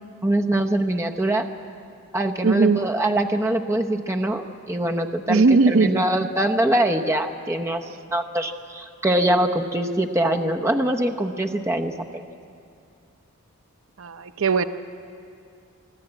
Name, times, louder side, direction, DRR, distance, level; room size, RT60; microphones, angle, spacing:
voice 1, 0.2-1.5 2.1-12.2, right 1 dB, 10° right, 4 dB, 0.8 m, -23 dB
voice 2, 2.4-2.9 5.3-6.0 14.0-14.6, right 4 dB, 65° right, 11 dB, 0.6 m, -19 dB
24.5 x 12.0 x 8.9 m, 2.5 s
head